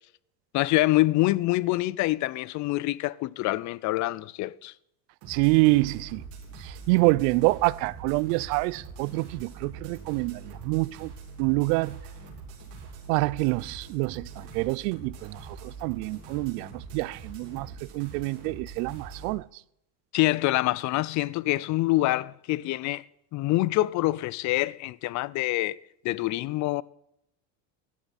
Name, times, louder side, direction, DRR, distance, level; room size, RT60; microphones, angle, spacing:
voice 1, 0.5-4.7 20.1-23.0 23.3-25.8 26.0-26.8, left 18 dB, 40° left, 0.4 m, -26 dB
sound 1, 5.2-19.3, right 4 dB, 60° right, 4.8 m, -44 dB
voice 2, 5.3-6.2 6.6-11.1 11.4-12.0 13.1-19.5, right 23 dB, 80° right, 0.6 m, -26 dB
17.0 x 11.5 x 4.1 m
supercardioid pair, 125°, 47 cm